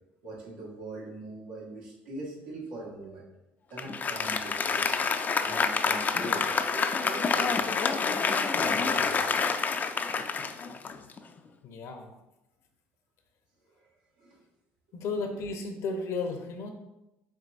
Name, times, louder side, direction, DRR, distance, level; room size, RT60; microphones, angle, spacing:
voice 1, 0.2-3.2 3.7-5.1 5.4-7.5 8.0-9.3 13.6-13.9 14.2-14.4, right 2 dB, 85° right, -5 dB, 1.5 m, -42 dB
Applause, 3.8-11.4, left 5 dB, 35° left, 0.4 m, -28 dB
voice 2, 11.6-12.1 14.9-16.7, left 3 dB, 65° left, 5 dB, 0.7 m, -33 dB
4.5 x 3.6 x 2.5 m, 0.95 s
supercardioid pair, 75°, 5 cm